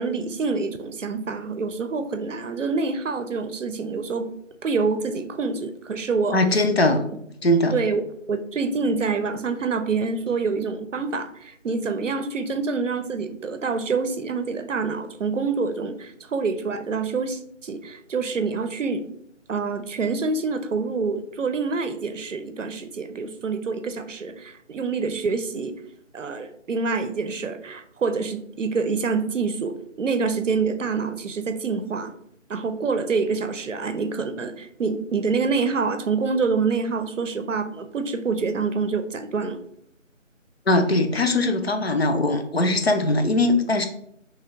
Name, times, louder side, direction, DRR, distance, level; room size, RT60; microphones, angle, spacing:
voice 1, 0.0-4.3 4.6-6.4 7.7-8.0 8.3-19.1 19.5-25.7 26.1-32.1 32.5-39.6, right 4 dB, 70° right, 9 dB, 0.6 m, -26 dB
voice 2, 6.3-7.0 7.4-7.7 40.7-43.9, left 2 dB, 55° left, 6 dB, 0.5 m, -20 dB
3.1 x 2.8 x 3.6 m, 0.72 s
figure-of-eight pair, 170°, 38 cm